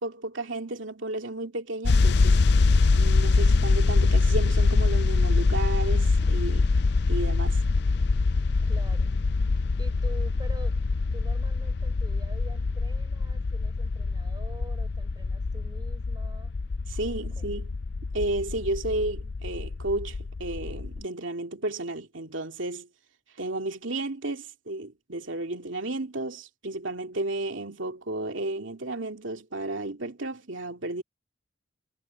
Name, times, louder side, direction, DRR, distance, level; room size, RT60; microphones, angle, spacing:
voice 1, 0.0-2.4 2.9-6.7 7.1-7.6 16.9-17.8 18.1-22.9 23.4-31.0, right 2 dB, 80° right, 2.5 m, -33 dB
sound 1, 1.8-21.0, left 3 dB, 60° left, 0.5 m, -24 dB
voice 2, 8.6-9.1 9.8-10.8 11.1-16.5 17.1-17.6, right 1 dB, 20° right, 5.7 m, -46 dB
head